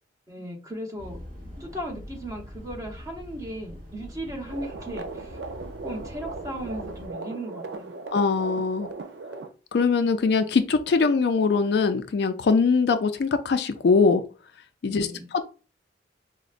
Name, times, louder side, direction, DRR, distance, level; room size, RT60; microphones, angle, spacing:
voice 1, 0.3-1.2 1.6-5.4 5.8-7.9 14.8-15.3, right 1 dB, 20° right, 0.9 m, -36 dB
sound 1, 1.0-7.1, equal, 50° right, 1.9 m, -43 dB
sound 2, 4.5-9.5, right 3 dB, 75° right, 0.5 m, -38 dB
voice 2, 8.1-8.9 9.7-14.2 14.8-15.5, left 4 dB, 65° left, 0.4 m, -22 dB
4.8 x 2.1 x 2.5 m
head